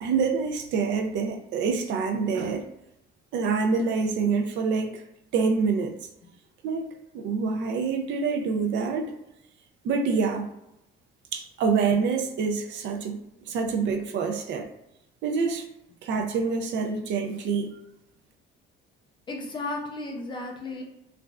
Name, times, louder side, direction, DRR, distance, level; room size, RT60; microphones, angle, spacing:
voice 1, 0.0-2.7 3.3-5.0 5.3-6.0 6.6-9.1 9.8-10.5 11.3-13.2 13.5-14.7 15.2-15.6 16.0-17.7, right 5 dB, 60° right, 0.4 m, -26 dB
voice 2, 19.3-20.8, left 2 dB, 20° left, 0.4 m, -34 dB
3.2 x 2.5 x 2.3 m
cardioid pair, 175°, 21 cm